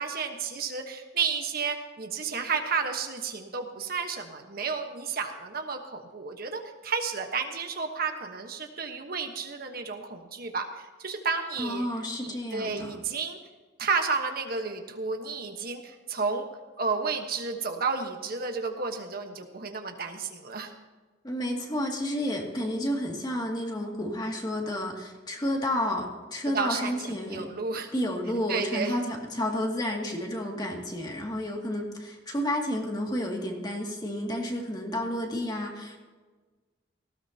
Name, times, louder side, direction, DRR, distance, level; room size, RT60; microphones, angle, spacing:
voice 1, 0.0-11.9 12.2-13.4 13.8-16.5 16.8-20.7 26.5-27.9 28.5-29.0, right 5 dB, 50° right, 5 dB, 1.3 m, -32 dB
voice 2, 11.6-12.9 21.2-27.5 27.9-36.0, left 1 dB, 20° left, 0 dB, 2.3 m, -31 dB
18.5 x 16.5 x 2.9 m, 1.3 s
head